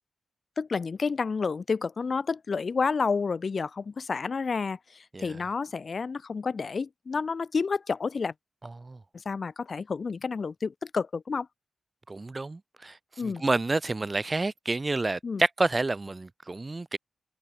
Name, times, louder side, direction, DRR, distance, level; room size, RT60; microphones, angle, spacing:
voice 1, 0.6-8.3 9.1-11.5 13.2-13.4 15.2-15.4, left 5 dB, 55° left, 3.7 m, -30 dB
voice 2, 12.1-13.0 13.2-17.0, right 3 dB, 30° right, 1.5 m, -29 dB
cardioid pair, 80°, 0 cm